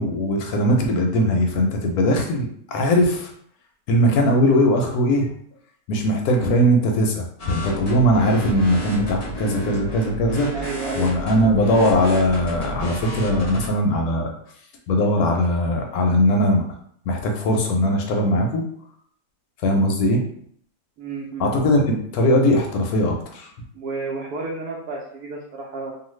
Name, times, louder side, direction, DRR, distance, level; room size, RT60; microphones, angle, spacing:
voice 1, 0.0-3.3 3.9-5.3 5.9-10.5 11.0-14.3 14.9-16.6 17.1-18.6 19.6-20.2 21.4-23.5, equal, 70° left, 2 dB, 1.0 m, -20 dB
sound 1, 7.4-13.7, right 1 dB, 45° left, 0.5 m, -32 dB
voice 2, 10.5-11.3 21.0-21.7 23.7-25.9, right 3 dB, 70° right, -3 dB, 1.0 m, -31 dB
2.6 x 2.4 x 3.0 m, 0.64 s
omnidirectional pair, 1.7 m